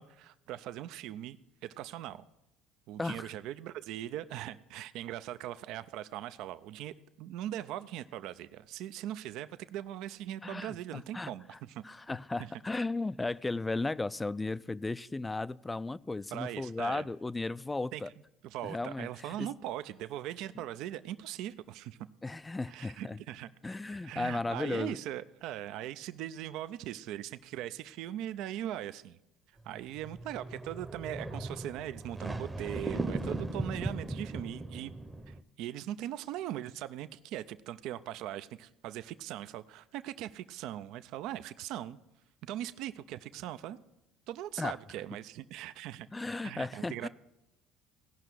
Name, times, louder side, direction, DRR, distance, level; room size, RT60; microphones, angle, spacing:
voice 1, 0.0-1.4 1.6-2.2 2.9-11.9 12.4-12.5 16.3-17.1 17.9-18.0 18.4-22.0 22.7-23.5 23.9-29.2 29.6-34.9 35.3-42.0 42.4-43.8 44.3-46.1 46.4-47.1, right 12 dB, 70° right, 13 dB, 0.4 m, -40 dB
voice 2, 3.0-3.3 10.4-11.3 11.8-18.1 18.6-19.5 22.2-23.2 23.6-25.0 44.6-44.8 46.1-47.1, left 2 dB, 15° left, 18 dB, 0.3 m, -35 dB
sound 1, 30.0-35.4, right 2 dB, 15° right, 0.7 m, -38 dB
17.0 x 5.7 x 6.2 m, 0.89 s
supercardioid pair, 95°, 0 cm